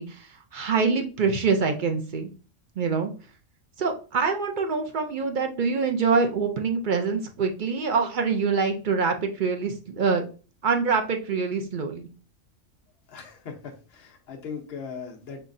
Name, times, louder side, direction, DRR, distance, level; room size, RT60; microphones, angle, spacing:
voice 1, 0.0-2.3 2.8-3.1 3.8-10.2 10.6-12.1, right 5 dB, 55° right, 5 dB, 0.5 m, -25 dB
voice 2, 13.1-15.4, left 6 dB, 55° left, 3 dB, 1.1 m, -39 dB
5.6 x 3.1 x 2.6 m, 0.36 s
omnidirectional pair, 1.3 m